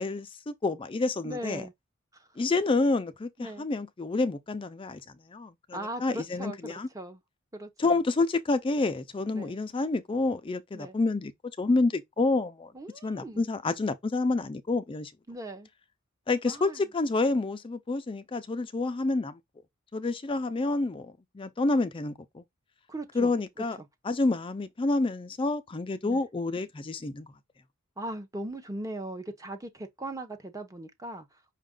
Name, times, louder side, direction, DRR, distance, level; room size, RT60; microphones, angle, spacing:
voice 1, 0.0-1.6 2.4-5.0 5.3-6.9 7.8-11.3 11.6-12.7 13.0-15.1 16.3-19.4 19.9-22.4 23.1-23.8 24.0-27.3, left 3 dB, 25° left, 0.4 m, -28 dB
voice 2, 1.2-1.7 2.1-2.3 3.4-3.7 5.7-7.2 7.5-8.0 9.3-9.6 10.7-11.0 12.7-13.4 15.3-15.7 16.4-16.9 22.9-23.3 26.0-26.2 28.0-31.4, right 1 dB, 15° right, 0.7 m, -39 dB
5.6 x 2.4 x 3.6 m
head